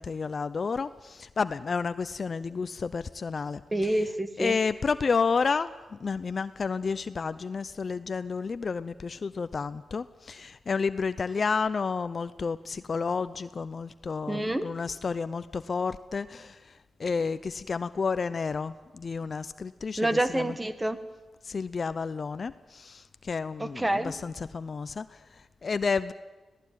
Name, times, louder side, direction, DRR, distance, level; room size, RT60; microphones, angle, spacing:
voice 1, 0.0-3.6 4.4-16.7 17.0-20.5 21.4-26.1, left 5 dB, 55° left, 13 dB, 0.6 m, -31 dB
voice 2, 3.7-4.6 14.3-14.7 20.0-21.0 23.6-24.1, right 1 dB, 20° right, 10 dB, 1.7 m, -27 dB
19.0 x 17.5 x 9.2 m, 1.2 s
cardioid pair, 60°, 0 cm